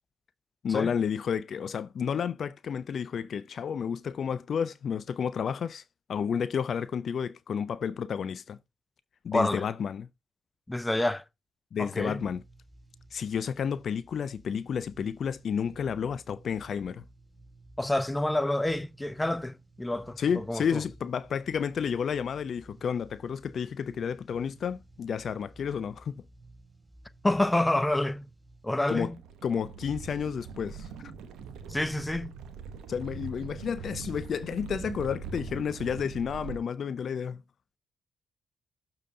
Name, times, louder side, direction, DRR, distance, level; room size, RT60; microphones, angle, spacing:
voice 1, 0.6-5.8 6.1-8.6 9.2-10.1 11.7-12.4 13.1-17.0 20.2-26.2 28.9-29.1 29.4-30.9 32.9-37.4, left 7 dB, 60° left, 0.4 m, -31 dB
voice 2, 9.3-9.6 10.7-11.2 11.8-12.2 17.8-20.8 27.2-28.3 28.6-29.1 31.7-32.3, left 1 dB, 15° left, 0.7 m, -28 dB
sound 1, 12.0-28.7, right 2 dB, 15° right, 3.4 m, -55 dB
sound 2, 28.9-36.6, right 5 dB, 80° right, 0.9 m, -42 dB
6.8 x 3.8 x 5.5 m
supercardioid pair, 50°, 0 cm